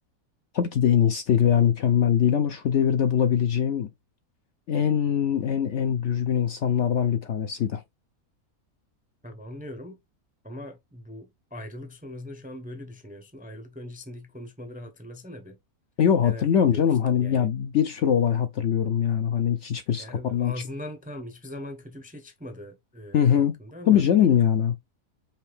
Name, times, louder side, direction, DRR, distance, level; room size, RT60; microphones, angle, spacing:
voice 1, 0.5-3.9 4.7-7.8 16.0-20.5 23.1-23.6 23.9-24.7, left 9 dB, 65° left, 0.8 m, -22 dB
voice 2, 9.2-10.0 10.4-15.6 16.2-17.5 20.0-24.0, left 1 dB, 10° right, 0.6 m, -41 dB
5.5 x 2.6 x 3.3 m
omnidirectional pair, 1.6 m